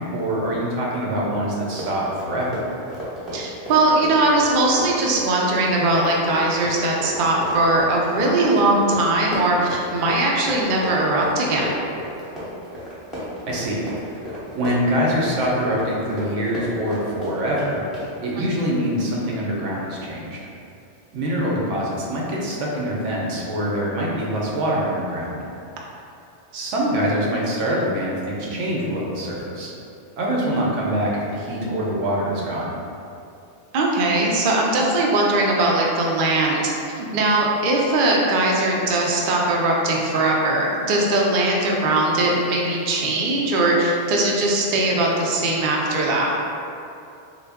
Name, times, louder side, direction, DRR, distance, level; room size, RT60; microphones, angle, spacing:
voice 1, 0.0-2.7 13.5-17.8 18.2-20.4 21.1-25.4 26.5-29.7 30.2-32.8, equal, 90° right, -4 dB, 1.0 m, -24 dB
Run, 1.7-18.1, equal, ahead, 0.6 m, -34 dB
voice 2, 3.3-11.8 18.4-18.7 30.4-30.7 33.7-46.4, right 2 dB, 60° right, -2 dB, 0.6 m, -20 dB
3.4 x 2.2 x 3.4 m, 2.6 s
omnidirectional pair, 1.2 m